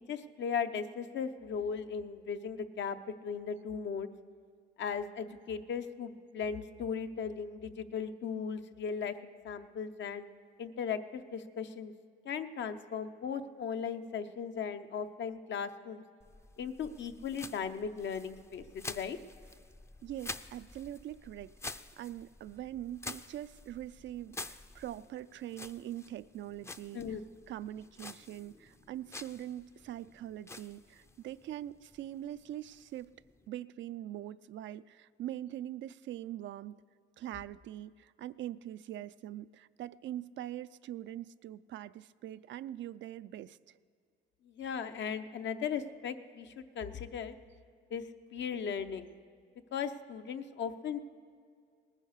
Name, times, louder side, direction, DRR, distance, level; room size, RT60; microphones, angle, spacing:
voice 1, 0.0-3.0 3.2-4.1 4.8-10.3 10.6-11.9 12.2-16.0 16.6-19.2 26.9-27.2 44.4-47.3 47.9-48.0 48.3-49.1 49.7-51.0, left 6 dB, 65° left, 8 dB, 0.8 m, -37 dB
sound 1, 16.2-33.5, left 2 dB, 15° left, 0.5 m, -49 dB
voice 2, 20.0-33.1 33.5-36.8 37.2-43.6, right 12 dB, 70° right, 14 dB, 0.4 m, -43 dB
18.5 x 9.9 x 6.5 m, 2.3 s
cardioid pair, 90°, 20 cm